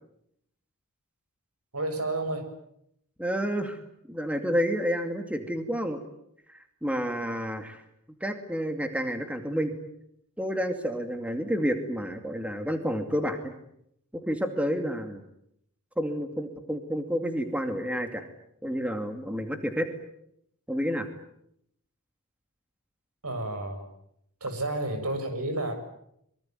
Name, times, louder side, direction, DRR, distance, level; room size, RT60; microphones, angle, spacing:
voice 1, 1.7-2.5 23.2-23.8 24.4-25.7, right 2 dB, 85° right, 8 dB, 7.0 m, -31 dB
voice 2, 3.2-3.8 4.1-6.0 6.5-7.8 8.2-9.7 10.4-13.5 14.1-15.2 16.0-18.2 18.6-19.9 20.7-21.1, equal, 5° right, 6 dB, 2.5 m, -30 dB
24.5 x 24.0 x 9.3 m, 0.76 s
head